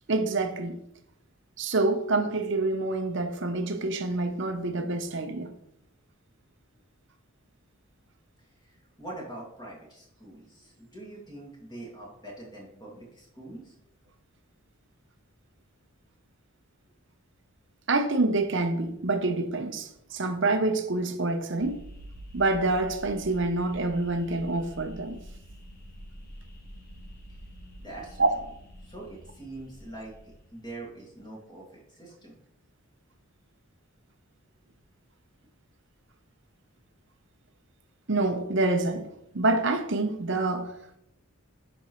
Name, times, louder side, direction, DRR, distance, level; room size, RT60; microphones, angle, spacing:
voice 1, 0.1-0.8 1.6-5.5 17.9-21.8 22.3-25.2 28.2-28.3 38.1-39.1 39.3-40.7, right 2 dB, 55° right, 0.8 m, -27 dB
voice 2, 8.4-13.7 27.8-32.4, right 2 dB, 20° left, 2.2 m, -44 dB
sound 1, 21.6-30.8, equal, 45° left, 1.2 m, -47 dB
9.8 x 5.4 x 3.1 m
head